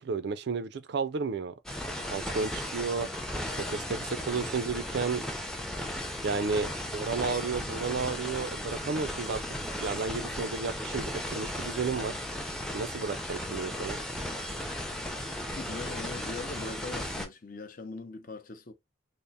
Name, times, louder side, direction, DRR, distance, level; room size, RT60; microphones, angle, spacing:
voice 1, 0.0-1.5 2.1-3.1 3.6-5.2 6.2-9.4 9.8-12.1 12.7-14.0, right 4 dB, 60° right, 0.4 m, -32 dB
sound 1, 1.7-17.3, equal, 5° left, 0.5 m, -36 dB
voice 2, 15.6-18.7, left 3 dB, 45° left, 0.6 m, -41 dB
3.4 x 2.0 x 4.0 m
head